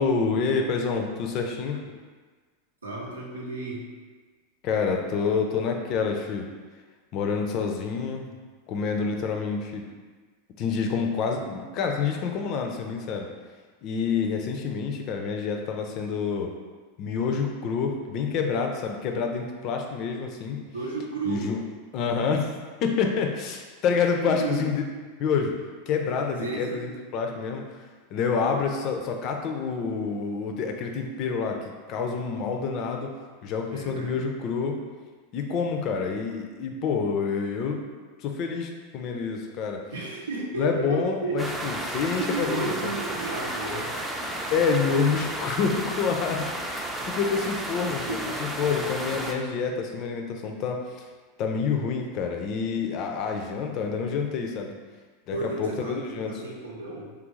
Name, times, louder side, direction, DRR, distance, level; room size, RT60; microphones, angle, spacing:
voice 1, 0.0-1.8 4.6-6.5 7.1-8.3 8.7-9.8 10.6-13.3 13.8-16.5 17.0-20.6 21.3-21.6 21.9-22.5 22.8-24.8 25.2-25.5 25.9-27.6 28.1-31.6 31.9-33.1 33.4-34.8 35.3-37.8 38.2-39.8 40.6-42.9 44.5-46.5 46.7-48.0 48.4-51.1 51.4-54.7 55.3-56.3, left 5 dB, 45° left, 3 dB, 0.4 m, -27 dB
voice 2, 2.8-3.9 20.7-21.5 24.3-24.7 26.4-26.8 33.7-34.3 39.9-41.8 42.1-43.9 47.4-47.6 48.1-48.3 55.3-57.1, right 3 dB, 85° right, -3 dB, 0.7 m, -33 dB
sound 1, 41.4-49.3, right 1 dB, 10° right, 0.4 m, -33 dB
3.3 x 2.5 x 3.1 m, 1.4 s
hypercardioid pair, 90°, 0 cm